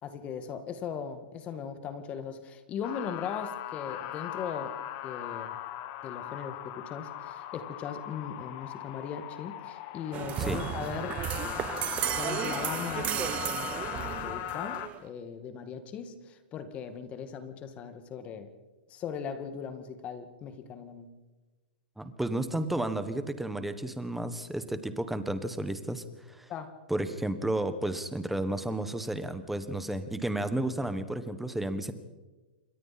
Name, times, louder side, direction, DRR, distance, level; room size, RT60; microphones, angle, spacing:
voice 1, 0.0-4.8 5.0-5.5 6.0-11.8 12.2-13.4 13.9-18.5 18.9-21.1 26.5-26.8, left 7 dB, 25° left, 10 dB, 2.0 m, -39 dB
sound 1, 2.8-14.9, left 13 dB, 40° left, 1.4 m, -39 dB
sound 2, 10.1-15.1, right 13 dB, 25° right, 0.6 m, -34 dB
voice 2, 22.0-26.5 26.9-31.9, right 1 dB, 5° right, 10 dB, 1.4 m, -32 dB
28.0 x 23.0 x 4.3 m, 1.2 s
hypercardioid pair, 145°, 5 cm